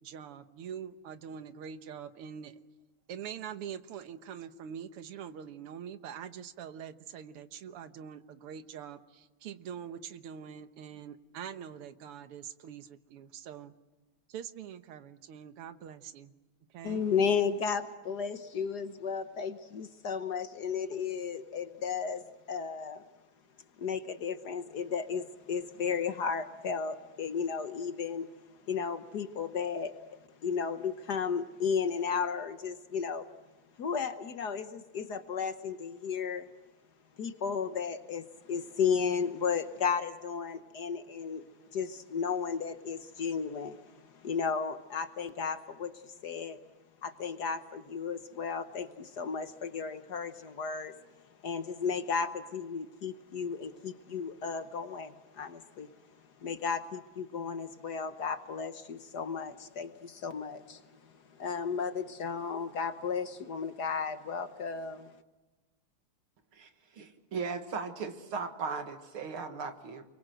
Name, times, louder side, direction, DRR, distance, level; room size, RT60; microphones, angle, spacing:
voice 1, 0.0-2.6 3.1-13.7 14.3-16.3 16.7-17.0, right 8 dB, 90° right, 11 dB, 2.0 m, -44 dB
voice 2, 16.8-23.0 23.8-28.3 28.6-30.0 30.4-33.2 33.8-36.5 37.2-41.5 41.7-46.6 47.0-50.9 51.4-55.9 56.4-65.1, left 6 dB, 55° left, 10 dB, 1.4 m, -34 dB
voice 3, 66.5-70.1, right 5 dB, 70° right, 7 dB, 2.7 m, -37 dB
29.5 x 23.0 x 7.8 m, 1.1 s
omnidirectional pair, 2.4 m